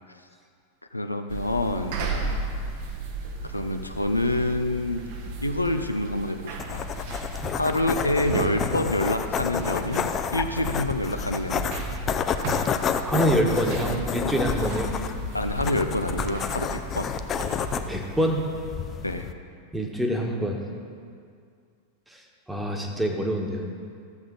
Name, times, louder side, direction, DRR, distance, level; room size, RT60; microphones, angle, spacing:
voice 1, 0.9-2.4 3.4-5.0 5.4-6.9 7.6-11.7 15.3-17.1 19.0-19.3, left 1 dB, 85° left, 6 dB, 0.5 m, -27 dB
sound 1, 1.3-17.9, right 3 dB, 50° right, 1.2 m, -35 dB
sound 2, 6.6-19.3, left 7 dB, 25° left, 0.5 m, -30 dB
voice 2, 13.0-14.9 17.7-18.5 19.7-20.6 22.1-22.2 22.5-23.7, equal, 5° right, 1 dB, 1.4 m, -26 dB
14.0 x 7.6 x 3.9 m, 2.2 s
figure-of-eight pair, 90°, 0 cm